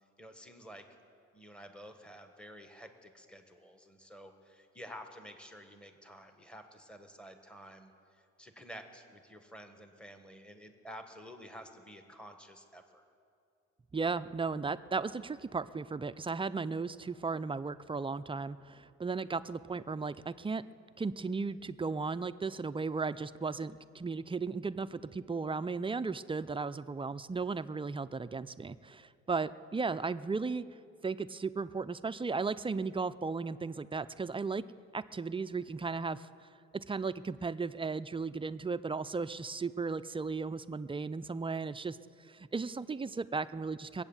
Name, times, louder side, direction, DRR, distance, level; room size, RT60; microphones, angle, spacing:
voice 1, 0.2-0.9 1.3-13.0, equal, 5° left, 6 dB, 1.4 m, -51 dB
voice 2, 13.9-20.6 21.0-30.6 31.0-34.6 34.9-36.3 36.7-42.0 42.3-44.0, right 4 dB, 20° right, 14 dB, 0.4 m, -35 dB
22.0 x 8.9 x 7.2 m, 2.5 s
cardioid pair, 90°, 30 cm